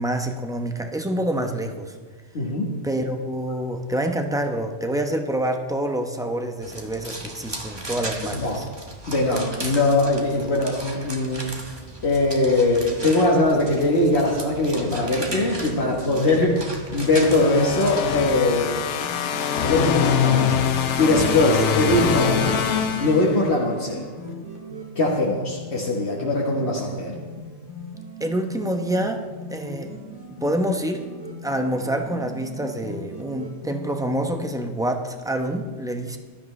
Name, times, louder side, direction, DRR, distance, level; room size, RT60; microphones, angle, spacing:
voice 1, 0.0-2.0 2.8-8.7 28.2-29.2 29.5-29.9 30.3-31.0 31.4-36.2, right 1 dB, 5° right, 4 dB, 0.7 m, -27 dB
voice 2, 2.3-2.7 8.3-8.6 9.1-11.5 12.0-18.8 19.6-22.6 23.0-24.1 25.0-27.2, left 2 dB, 65° left, -3 dB, 1.5 m, -21 dB
sound 1, 6.6-18.2, right 1 dB, 20° right, 1.3 m, -36 dB
sound 2, 14.8-34.6, equal, 80° right, 2.3 m, -39 dB
sound 3, 17.0-23.7, left 7 dB, 80° left, 1.1 m, -24 dB
15.5 x 12.0 x 3.2 m, 1.4 s
omnidirectional pair, 1.2 m